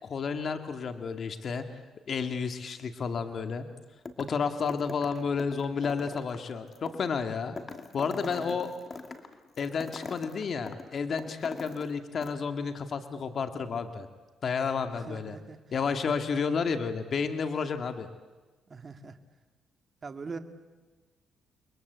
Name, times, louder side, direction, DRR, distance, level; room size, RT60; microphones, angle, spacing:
voice 1, 0.0-1.6 2.1-3.7 4.2-7.6 7.9-8.7 9.6-14.1 14.4-15.4 15.7-18.1, left 5 dB, 50° left, 7 dB, 2.2 m, -31 dB
sound 1, 4.0-4.4 4.7-11.9 12.2-12.3, left 4 dB, 35° left, 2.5 m, -42 dB
voice 2, 8.2-8.6 15.1-15.6 18.7-19.2 20.0-20.4, right 4 dB, 35° right, 7 dB, 2.2 m, -41 dB
29.5 x 22.5 x 8.3 m, 1.3 s
cardioid pair, 90°, 0 cm